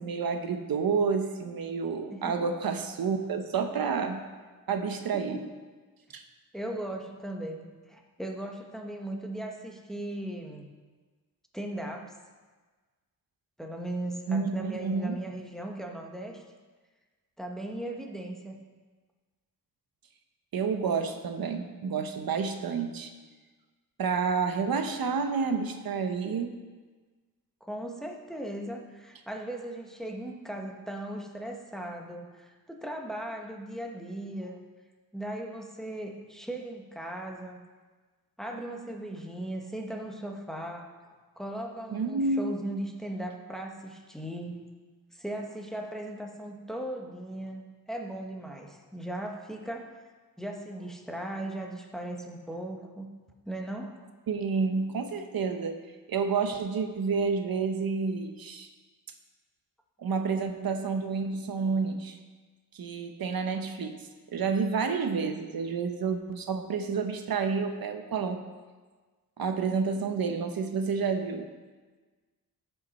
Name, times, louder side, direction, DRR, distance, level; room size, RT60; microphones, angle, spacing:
voice 1, 0.0-4.2 4.7-5.4 6.1-6.2 14.3-15.2 20.5-23.1 24.0-26.5 41.9-42.5 54.3-55.8 56.1-58.7 60.0-62.2 62.7-64.0 64.3-68.4 69.4-71.5, right 5 dB, 75° right, 6 dB, 0.9 m, -29 dB
voice 2, 2.1-2.7 5.1-5.4 6.5-10.7 11.5-12.1 13.6-16.4 17.4-18.5 27.6-34.6 35.1-37.6 38.4-44.5 45.1-47.6 47.9-49.9 50.4-53.1 53.5-54.0, right 1 dB, ahead, 1 dB, 1.1 m, -38 dB
15.0 x 5.6 x 4.2 m, 1.4 s
wide cardioid pair, 105°, 36 cm